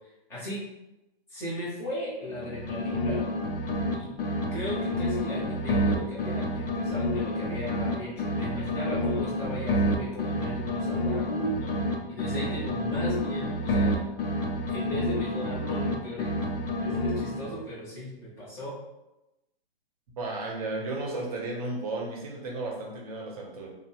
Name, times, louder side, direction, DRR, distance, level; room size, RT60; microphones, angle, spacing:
voice 1, 0.3-0.6 1.3-3.2 3.9-4.1 4.5-11.8 12.1-14.0 14.7-16.3 16.8-18.7, equal, 10° left, -8 dB, 0.8 m, -36 dB
sound 1, 2.3-11.9 12.2-15.9 16.2-17.6, left 1 dB, 65° left, 0.6 m, -29 dB
voice 2, 20.2-23.7, right 2 dB, 40° right, -1 dB, 0.7 m, -34 dB
2.9 x 2.1 x 2.8 m, 0.94 s
hypercardioid pair, 150°, 30 cm